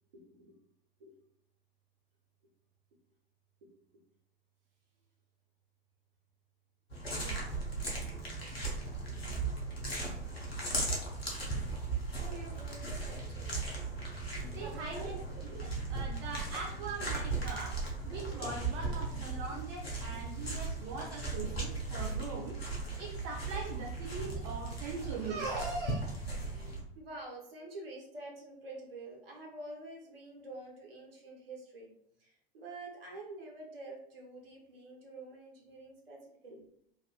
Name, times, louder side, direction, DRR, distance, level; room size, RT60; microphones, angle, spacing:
voice 1, 0.1-0.6 1.0-1.1 3.6-3.8 9.0-9.1 12.2-13.6 14.5-15.1 20.5-20.6 26.5-31.9 32.2-36.6, right 2 dB, 70° right, 0 dB, 0.8 m, -48 dB
sound 1, 6.9-26.8, right 3 dB, 90° left, 0.7 m, -37 dB
voice 2, 7.2-7.5 14.4-17.7 18.0-22.6 23.0-26.0, right 3 dB, 35° right, -1 dB, 0.4 m, -41 dB
2.5 x 2.4 x 2.2 m, 0.69 s
figure-of-eight pair, 90°, 30 cm